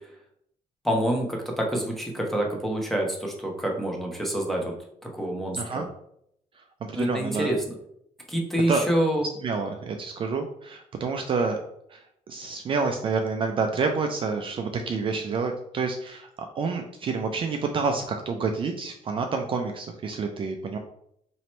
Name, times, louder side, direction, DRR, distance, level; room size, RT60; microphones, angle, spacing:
voice 1, 0.8-4.7 5.0-5.8 6.9-7.6 8.3-9.3, right 1 dB, ahead, 0 dB, 0.9 m, -27 dB
voice 2, 5.5-5.9 6.9-7.5 8.7-8.9 9.4-11.6 11.9-12.0 12.3-16.3 16.6-20.8, right 4 dB, 40° right, 4 dB, 0.4 m, -28 dB
3.0 x 3.0 x 4.2 m, 0.72 s
cardioid pair, 125°, 14 cm